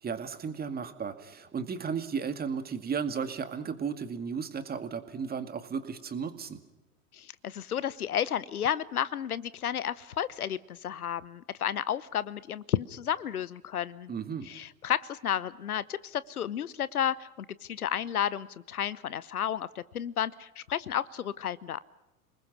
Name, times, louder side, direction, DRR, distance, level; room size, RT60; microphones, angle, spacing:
voice 1, 0.0-6.6 14.1-14.5, right 6 dB, 20° right, 9 dB, 2.1 m, -34 dB
voice 2, 7.1-14.1 14.5-21.8, left 9 dB, 80° left, 19 dB, 0.9 m, -32 dB
28.0 x 20.5 x 6.1 m, 1.0 s
hypercardioid pair, 95°, 44 cm